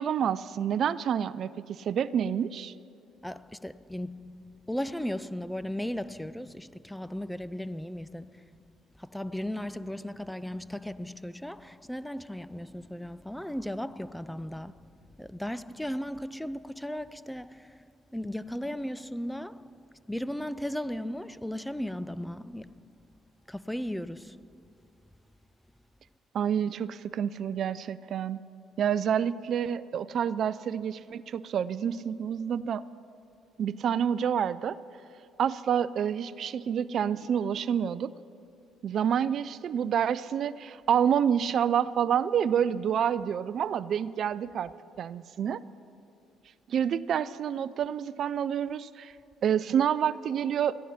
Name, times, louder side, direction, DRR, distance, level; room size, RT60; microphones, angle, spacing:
voice 1, 0.0-2.7 26.3-28.4 28.8-32.8 33.6-34.8 35.4-38.1 38.8-44.7 45.0-45.6 46.7-49.1 49.4-50.7, right 8 dB, 60° right, 0.4 m, -28 dB
voice 2, 3.2-8.6 9.0-14.9 15.2-22.9 23.5-24.7, equal, 5° left, 0.5 m, -36 dB
22.0 x 14.0 x 4.3 m
supercardioid pair, 65°, 0 cm